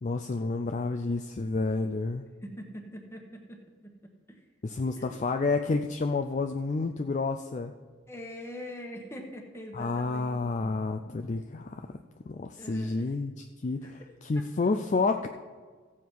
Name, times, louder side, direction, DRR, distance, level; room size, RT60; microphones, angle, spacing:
voice 1, 0.0-2.3 4.6-7.7 9.7-12.0 12.3-15.3, left 3 dB, 35° left, 6 dB, 0.3 m, -30 dB
voice 2, 2.4-3.6 4.3-4.4 5.0-5.2 8.1-10.7 12.6-13.1, equal, 10° left, 2 dB, 1.2 m, -43 dB
15.0 x 7.1 x 4.6 m, 1.5 s
head